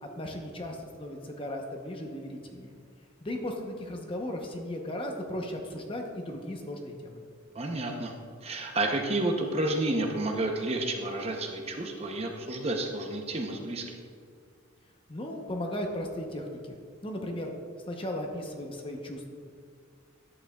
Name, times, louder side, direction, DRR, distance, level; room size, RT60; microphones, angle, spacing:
voice 1, 0.0-2.7 3.2-7.2 15.1-16.7 17.0-17.5 17.9-19.3, left 1 dB, 25° left, 2 dB, 0.8 m, -36 dB
voice 2, 7.5-8.1 8.4-14.0, right 2 dB, 30° right, 2 dB, 0.7 m, -30 dB
11.0 x 8.6 x 2.3 m, 2.2 s
head